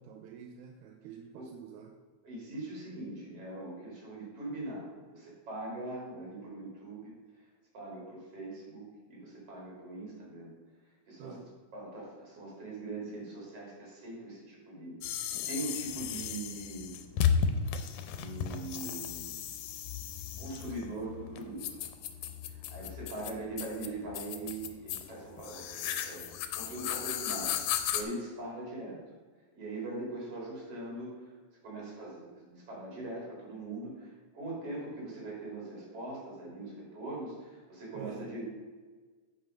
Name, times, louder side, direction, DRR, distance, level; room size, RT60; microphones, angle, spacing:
voice 1, 0.0-1.9 11.2-11.4 37.9-38.3, right 7 dB, 85° right, 4 dB, 2.0 m, -47 dB
voice 2, 2.2-4.8 5.1-7.1 7.7-10.5 11.1-11.4 11.7-17.0 18.1-19.5 20.4-21.6 22.5-26.3 26.6-29.0 29.5-31.3 31.6-38.4, right 2 dB, 50° right, -4 dB, 3.8 m, -41 dB
sound 1, 15.0-28.0, left 8 dB, 90° left, 2.1 m, -35 dB
8.1 x 5.5 x 5.2 m, 1.4 s
omnidirectional pair, 3.5 m